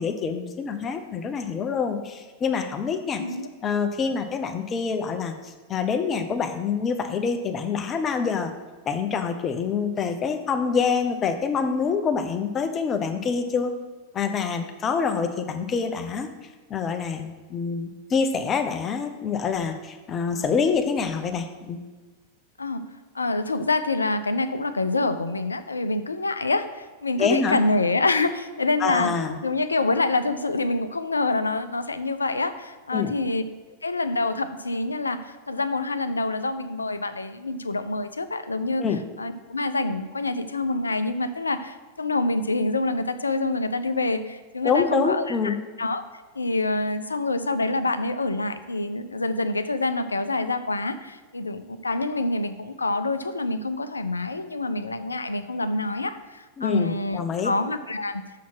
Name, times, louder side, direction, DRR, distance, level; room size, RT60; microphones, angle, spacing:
voice 1, 0.0-3.2 3.6-8.5 8.9-13.7 14.1-16.3 16.7-21.8 27.2-27.6 28.8-29.4 32.9-33.1 38.8-39.0 44.6-45.6 56.6-57.5, left 5 dB, 25° left, 7 dB, 0.7 m, -26 dB
voice 2, 3.1-3.5 22.6-22.8 23.1-29.1 29.4-33.4 33.8-38.8 39.2-46.0 46.4-58.2, left 2 dB, 80° left, 11 dB, 0.5 m, -26 dB
6.3 x 5.7 x 6.0 m, 1.3 s
figure-of-eight pair, 90°, 0 cm